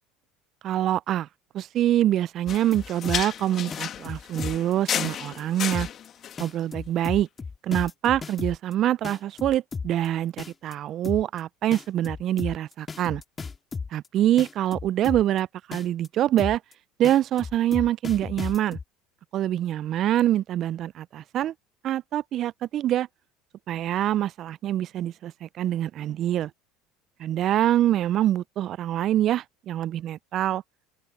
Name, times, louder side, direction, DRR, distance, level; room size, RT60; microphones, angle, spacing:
voice 1, 0.6-1.3 1.5-5.9 6.4-7.3 7.6-13.2 13.9-16.6 17.0-18.8 19.3-21.5 21.8-23.1 23.7-26.5 27.2-30.6, right 12 dB, 50° right, 0.5 m, -25 dB
sound 1, 2.5-6.5, left 9 dB, 45° left, 2.4 m, -33 dB
sound 2, 2.5-3.4 3.7-4.7 5.0-5.4 5.7-6.1 6.4-8.7 9.0-10.1 10.4-10.7 11.0-11.4 11.7-14.1 14.4-15.4 15.7-16.1 16.4-16.7 17.0-18.8, left 5 dB, 25° left, 2.4 m, -34 dB
open air
hypercardioid pair, 80°, 0 cm